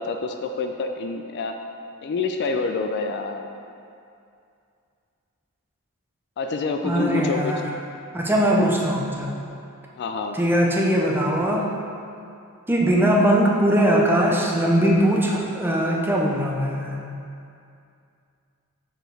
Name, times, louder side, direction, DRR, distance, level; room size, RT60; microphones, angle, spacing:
voice 1, 0.0-1.5 2.0-3.4 6.4-7.6 10.0-10.4, left 4 dB, 50° left, 5 dB, 0.3 m, -27 dB
voice 2, 6.8-7.6 8.1-9.3 10.3-11.7 12.7-17.0, right 1 dB, 10° right, -2 dB, 0.5 m, -20 dB
6.4 x 4.6 x 3.3 m, 2.5 s
head